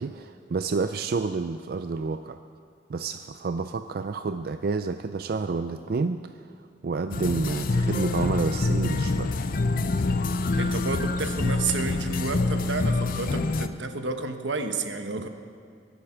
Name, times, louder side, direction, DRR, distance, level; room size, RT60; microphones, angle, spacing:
voice 1, 0.0-2.4 2.9-6.3 6.8-9.4 15.2-15.3, right 4 dB, 55° right, 9 dB, 0.4 m, -29 dB
sound 1, 7.1-13.7, left 3 dB, 50° left, 0.5 m, -26 dB
voice 2, 10.6-15.3, right 4 dB, 90° right, 7 dB, 1.1 m, -31 dB
22.5 x 8.2 x 5.9 m, 2.2 s
head